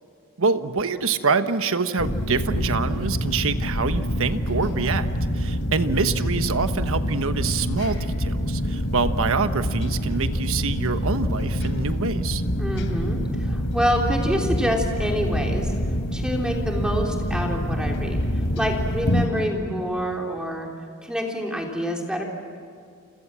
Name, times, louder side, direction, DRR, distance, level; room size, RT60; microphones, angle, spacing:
voice 1, 0.4-5.1 5.3-12.4, right 4 dB, 65° right, 10 dB, 1.2 m, -25 dB
sound 1, 2.0-19.3, equal, 60° left, 3.4 m, -26 dB
voice 2, 12.6-15.7 16.1-20.7 21.0-22.2, equal, 5° right, 0 dB, 3.4 m, -27 dB
30.0 x 26.5 x 7.5 m, 2.2 s
head